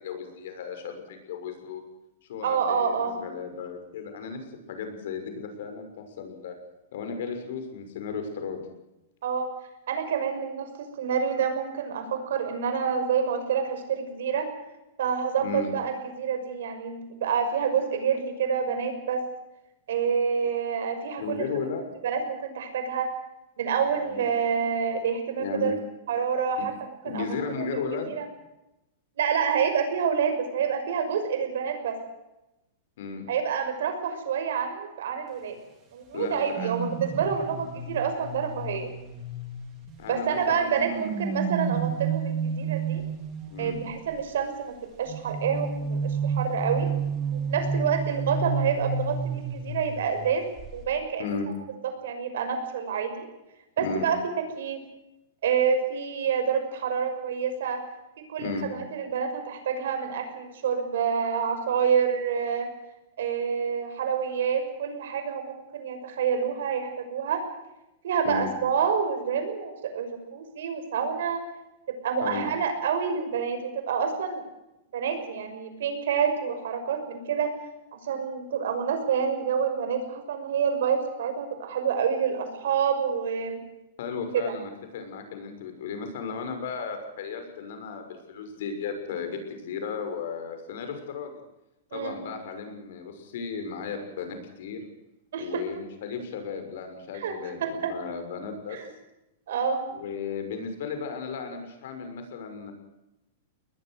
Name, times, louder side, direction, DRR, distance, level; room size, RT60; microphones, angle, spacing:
voice 1, 0.0-1.8 2.3-4.4 4.7-6.6 6.9-8.6 15.4-15.7 21.2-21.9 23.9-24.2 25.4-25.8 26.6-26.7 27.0-28.2 33.0-33.2 36.1-36.7 40.0-41.1 43.5-43.8 51.2-51.5 53.8-54.1 58.4-58.7 68.2-68.5 72.2-72.5 84.0-91.3 91.9-94.9 95.4-98.8 99.9-102.7, left 5 dB, 65° left, 6 dB, 6.3 m, -35 dB
voice 2, 2.4-3.2 9.2-9.5 9.9-14.5 15.0-19.2 19.9-21.5 22.0-23.1 23.6-25.8 26.1-27.3 27.5-27.7 28.1-28.2 29.2-32.0 33.3-35.6 35.9-38.9 40.1-43.0 43.6-46.9 47.3-50.5 50.7-51.3 52.0-53.3 53.8-54.2 54.5-54.8 55.4-57.8 58.3-62.7 63.2-67.4 68.0-71.4 71.9-74.4 74.9-77.5 77.9-83.6 84.3-84.6 91.9-92.2 95.3-95.6 97.1-97.3 97.6-97.9 98.7-98.9 99.5-99.8, right 7 dB, 75° right, 7 dB, 6.0 m, -28 dB
sound 1, 36.5-40.2 40.8-44.0 45.1-50.3 50.6-50.8, right 5 dB, 25° right, 4.8 m, -31 dB
21.5 x 20.5 x 6.6 m, 0.94 s
supercardioid pair, 160°, 0 cm